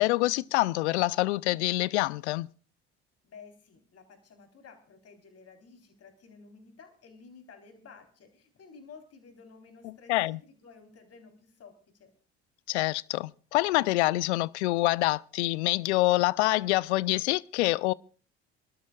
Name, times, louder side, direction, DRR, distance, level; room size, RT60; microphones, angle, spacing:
voice 1, 0.0-2.5 9.8-10.4 12.7-17.9, left 19 dB, 80° left, 0.5 m, -26 dB
voice 2, 3.2-12.1, left 5 dB, 45° left, 4.0 m, -53 dB
26.5 x 12.5 x 2.4 m
hypercardioid pair, 60°, 33 cm